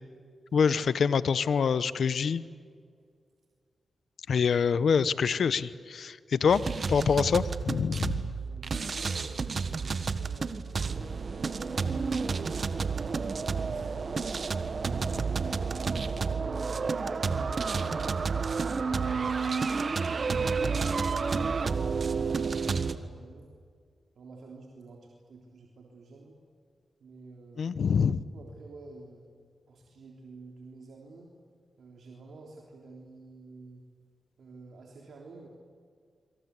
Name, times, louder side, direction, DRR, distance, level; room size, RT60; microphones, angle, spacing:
voice 1, 0.5-2.4 4.3-8.3 27.6-28.2, left 6 dB, 75° left, 15 dB, 1.0 m, -26 dB
sound 1, 6.5-23.0, right 5 dB, 60° right, 1.5 m, -30 dB
voice 2, 8.4-11.6 13.4-14.4 15.1-18.4 19.1-23.5 24.2-26.4 27.0-27.8 28.3-29.3 29.7-31.3 31.8-33.8 34.4-35.5, right 3 dB, 75° right, -1 dB, 3.5 m, -50 dB
26.0 x 25.5 x 8.3 m, 2.1 s
cardioid pair, 45°, 0 cm